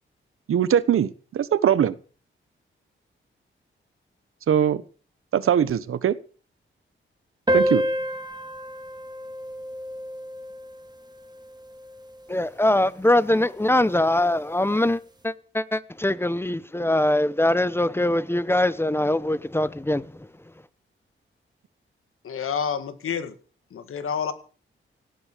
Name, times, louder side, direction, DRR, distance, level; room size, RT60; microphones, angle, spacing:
voice 1, 0.5-1.9 4.5-4.8 5.3-6.1 7.5-7.8, right 9 dB, 90° right, 1.3 m, -21 dB
sound 1, 7.5-12.4, equal, 20° right, 2.7 m, -29 dB
voice 2, 12.3-20.1, left 1 dB, 10° left, 0.9 m, -22 dB
voice 3, 22.2-23.4 23.7-24.3, left 7 dB, 80° left, 2.1 m, -28 dB
18.0 x 11.0 x 6.9 m
wide cardioid pair, 100°, 21 cm